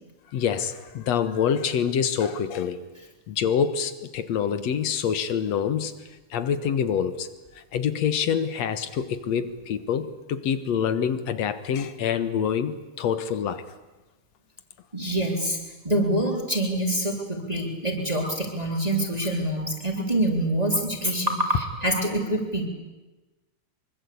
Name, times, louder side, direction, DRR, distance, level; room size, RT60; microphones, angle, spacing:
voice 1, 0.3-2.8 3.3-5.9 6.3-7.3 7.7-13.7, left 8 dB, 65° left, 12 dB, 2.5 m, -26 dB
voice 2, 14.9-15.6 15.8-22.7, right 1 dB, 10° right, 1 dB, 3.6 m, -25 dB
24.5 x 24.5 x 8.6 m, 1.1 s
omnidirectional pair, 3.3 m